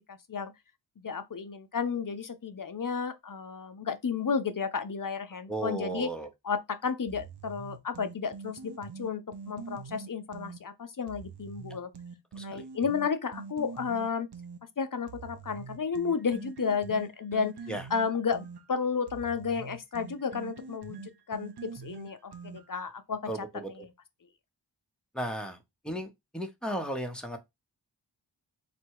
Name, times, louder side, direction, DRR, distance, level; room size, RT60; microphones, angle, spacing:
voice 1, 0.1-0.5 1.0-6.1 6.4-11.9 12.4-14.3 14.8-17.6 17.9-23.9, left 6 dB, 45° left, 0.7 m, -32 dB
voice 2, 5.5-6.3 12.4-12.6 17.7-17.8 23.3-23.9 25.1-25.6 25.8-27.4, right 1 dB, ahead, 0.9 m, -35 dB
sound 1, 7.1-10.6 11.1-14.6 15.1-22.9, right 5 dB, 60° right, 0.8 m, -44 dB
4.1 x 2.3 x 4.6 m
wide cardioid pair, 55°, 45 cm